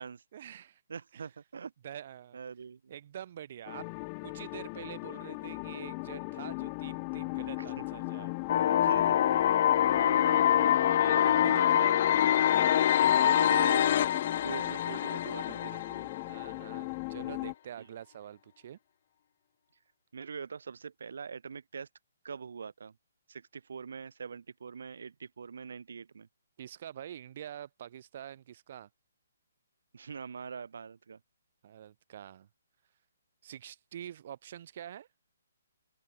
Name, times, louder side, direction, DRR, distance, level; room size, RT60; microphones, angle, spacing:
voice 1, 0.3-0.8 1.1-1.3 1.8-2.4 2.9-3.9 4.2-8.4 11.0-12.0 16.3-18.8 26.6-28.9 31.6-32.5 33.4-35.1, right 10 dB, 45° right, 2.5 m, -46 dB
voice 2, 0.9-1.7 2.3-3.0 7.8-7.9 8.7-9.7 10.0-10.9 11.1-11.9 13.0-14.1 14.4-16.1 17.8-17.9 20.1-21.9 22.2-23.0 23.3-26.3 29.9-31.2, right 6 dB, 70° right, 5.5 m, -43 dB
sound 1, 3.7-17.5, left 33 dB, 25° left, 1.9 m, -38 dB
sound 2, 8.5-16.5, left 10 dB, 45° left, 0.7 m, -25 dB
open air
hypercardioid pair, 160°, 0 cm